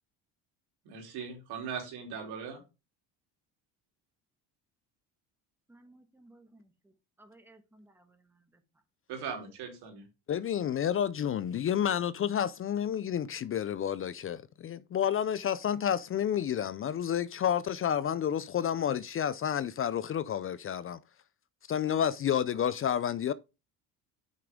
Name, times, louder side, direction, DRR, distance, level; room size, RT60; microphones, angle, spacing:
voice 1, 0.8-2.6 9.1-10.1, right 6 dB, 75° right, 3.6 m, -39 dB
voice 2, 5.7-6.7 7.2-8.4, right 1 dB, 5° right, 1.4 m, -58 dB
voice 3, 10.3-21.0 21.7-23.3, left 9 dB, 35° left, 0.4 m, -30 dB
8.5 x 6.0 x 3.6 m
supercardioid pair, 100°, 39 cm